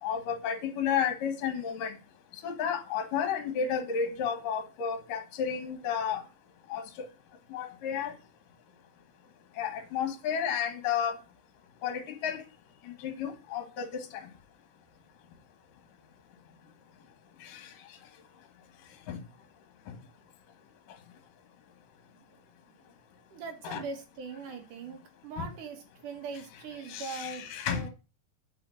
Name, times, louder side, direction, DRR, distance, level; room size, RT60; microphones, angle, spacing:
voice 1, 0.0-1.9 2.4-6.2 6.7-6.8 7.5-8.1 9.6-11.2 11.8-12.4 12.8-13.9 14.1-14.3 17.4-17.6 19.1-19.2 19.9-20.0 23.6-23.8 25.4-25.5 26.9-27.8, left 7 dB, 60° left, 2.6 m, -32 dB
voice 2, 23.3-27.9, right 4 dB, 55° right, 2.8 m, -41 dB
8.9 x 6.0 x 6.4 m
omnidirectional pair, 4.9 m